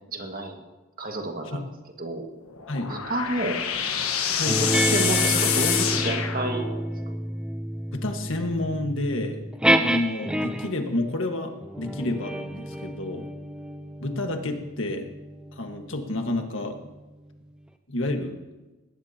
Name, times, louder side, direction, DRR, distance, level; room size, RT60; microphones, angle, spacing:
voice 1, 0.1-0.6 1.0-1.7 2.0-2.3 2.9-3.6 4.6-6.7, right 2 dB, 40° right, 3 dB, 1.9 m, -30 dB
sound 1, 2.5-7.0, left 8 dB, 85° left, 1.4 m, -27 dB
voice 2, 4.3-4.6 7.9-9.4 9.8-13.3 14.0-15.1 15.5-16.8 17.9-18.3, left 2 dB, 65° left, 4 dB, 1.6 m, -29 dB
sound 2, 4.5-10.9 11.6-16.5, right 1 dB, 5° right, 0.6 m, -29 dB
19.5 x 17.5 x 2.9 m, 1.1 s
head